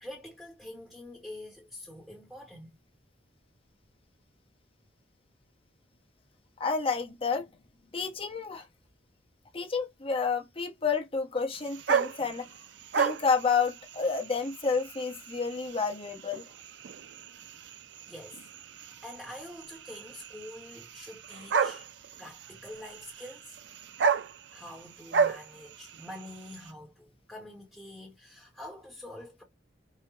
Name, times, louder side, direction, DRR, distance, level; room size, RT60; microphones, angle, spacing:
voice 1, 0.0-2.8 18.1-18.4 18.8-21.9 22.2-23.6 24.5-29.4, left 1 dB, ahead, 0.9 m, -46 dB
voice 2, 6.6-7.5 7.9-8.6 9.5-12.5 12.9-16.5, left 5 dB, 30° left, 0.8 m, -30 dB
sound 1, 11.5-26.7, right 6 dB, 65° right, 0.4 m, -34 dB
4.7 x 2.1 x 3.1 m
head